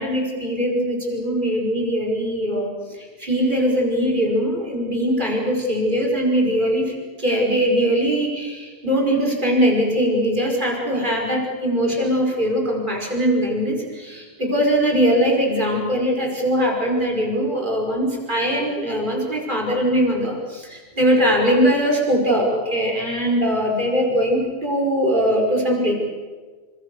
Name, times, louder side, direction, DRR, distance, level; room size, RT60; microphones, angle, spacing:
voice 1, 0.0-2.7 3.2-6.9 7.2-25.9, equal, 45° right, 0 dB, 5.5 m, -21 dB
27.5 x 24.5 x 7.0 m, 1.4 s
omnidirectional pair, 1.2 m